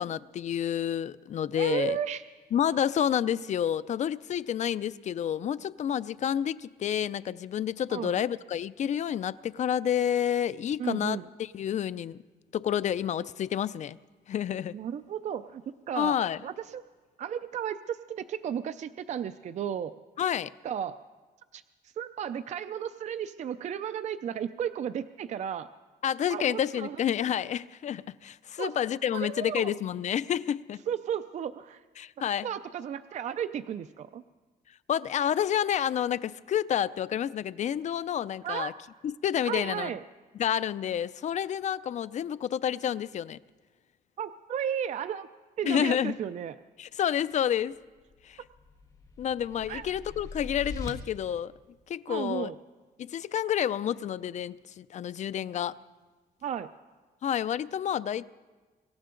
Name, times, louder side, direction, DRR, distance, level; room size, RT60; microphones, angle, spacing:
voice 1, 0.0-2.0 2.5-12.2 12.5-14.0 14.3-14.8 16.0-16.4 20.2-20.5 26.0-30.8 32.0-32.5 34.9-38.7 39.0-39.9 40.4-43.4 45.6-46.2 46.8-47.7 48.2-48.4 49.2-51.5 51.9-52.5 53.0-55.7 57.2-58.2, left 9 dB, 45° left, 0.4 m, -29 dB
voice 2, 1.5-2.2 7.9-8.2 10.8-11.2 14.7-16.2 16.4-16.8 17.2-19.9 20.6-21.0 21.5-25.7 26.3-27.0 28.6-28.7 29.1-29.8 30.9-31.8 32.2-34.2 38.4-38.7 39.4-40.0 44.2-45.3 45.6-46.6 49.7-49.9 52.1-52.6 56.4-56.7, right 9 dB, 45° right, 0.4 m, -34 dB
sound 1, 48.1-50.9, left 3 dB, 20° left, 1.6 m, -42 dB
24.5 x 14.0 x 3.8 m
cardioid pair, 125°, 16 cm